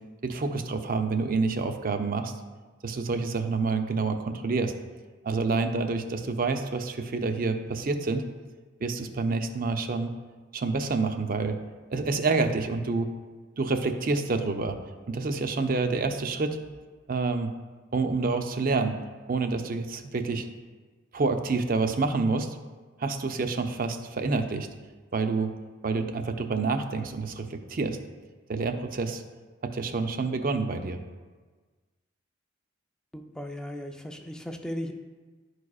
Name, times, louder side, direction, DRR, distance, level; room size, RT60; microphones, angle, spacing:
voice 1, 0.2-2.3 2.8-4.7 5.2-8.2 8.8-10.1 10.5-11.6 11.9-13.1 13.6-14.8 15.1-16.6 17.1-17.5 17.9-19.0 19.3-20.5 21.1-22.6 23.0-24.7 25.1-25.5 25.8-28.0 28.5-29.2 29.6-31.0, right 3 dB, 45° right, 7 dB, 0.5 m, -28 dB
voice 2, 33.1-34.9, equal, 5° left, 4 dB, 0.4 m, -36 dB
11.5 x 4.8 x 2.4 m, 1.4 s
head